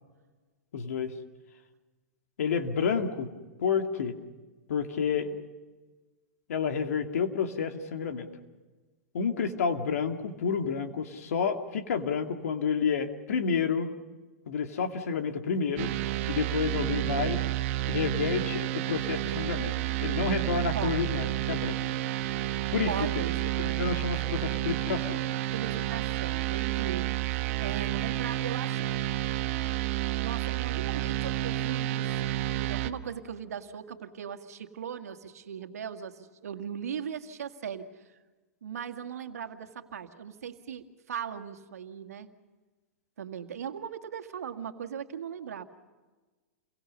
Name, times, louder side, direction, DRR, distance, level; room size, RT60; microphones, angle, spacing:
voice 1, 0.7-1.1 2.4-3.3 3.6-4.2 4.7-5.4 6.5-8.3 9.1-13.9 14.5-15.9 16.3-17.4 17.9-19.7 20.0-21.8 22.7-22.9 23.4-25.2, left 6 dB, 70° left, 5 dB, 2.6 m, -29 dB
sound 1, 15.8-32.9, right 15 dB, 55° right, 1.3 m, -30 dB
voice 2, 22.9-23.8 25.5-28.9 30.2-37.9 38.6-42.3 43.2-45.6, right 8 dB, 75° right, 6 dB, 2.0 m, -38 dB
30.0 x 23.5 x 5.5 m, 1.3 s
hypercardioid pair, 115°, 8 cm